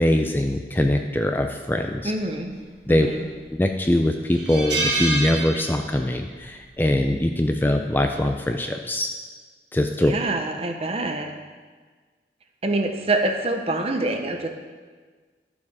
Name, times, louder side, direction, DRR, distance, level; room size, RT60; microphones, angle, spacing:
voice 1, 0.0-2.1 2.9-3.1 3.5-9.1 9.7-10.1, left 1 dB, 10° left, 4 dB, 0.4 m, -22 dB
voice 2, 2.0-2.6 2.9-3.3 10.0-11.3 12.6-14.5, right 2 dB, 35° right, 5 dB, 0.9 m, -26 dB
sound 1, 2.9-3.4 3.8-3.9 4.3-6.1 6.4-6.6 7.9-8.2, right 2 dB, 80° right, 1.6 m, -27 dB
12.0 x 7.2 x 4.8 m, 1.5 s
head